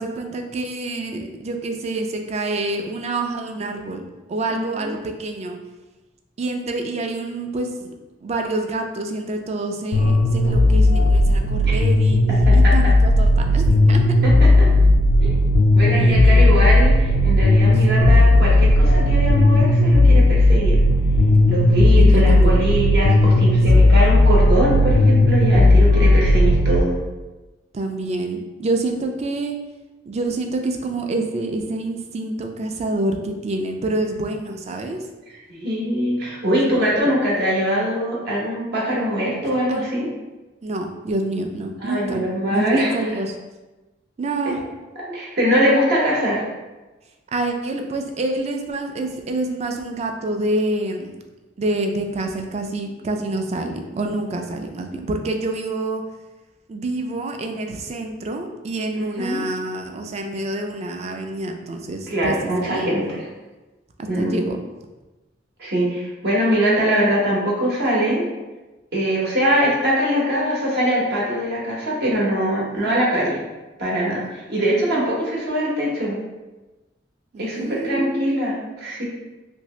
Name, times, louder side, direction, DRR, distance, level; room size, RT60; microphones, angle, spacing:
voice 1, 0.0-4.0 4.3-5.6 6.4-7.9 8.2-12.2 12.5-14.2 15.9-16.6 22.0-22.7 27.7-29.6 30.1-35.0 36.7-36.9 39.7-39.8 40.6-42.2 42.5-43.3 44.2-44.6 47.3-51.1 51.6-56.0 56.7-62.9 64.2-64.6 72.8-72.9 74.2-74.3 74.7-75.0 77.3-78.4, right 2 dB, 35° right, 4 dB, 0.3 m, -27 dB
voice 2, 4.5-4.9 11.6-11.7 12.5-12.7 14.2-14.7 15.2-15.3 15.7-20.8 21.5-26.9 35.3-40.1 41.8-43.0 45.1-46.4 58.9-59.4 62.1-63.2 64.1-64.4 65.6-68.2 68.9-73.4 73.8-76.2 77.4-79.1, equal, 60° right, -4 dB, 0.8 m, -22 dB
sound 1, 9.9-26.8, left 1 dB, 90° left, 0.3 m, -15 dB
2.7 x 2.6 x 3.1 m, 1.1 s
head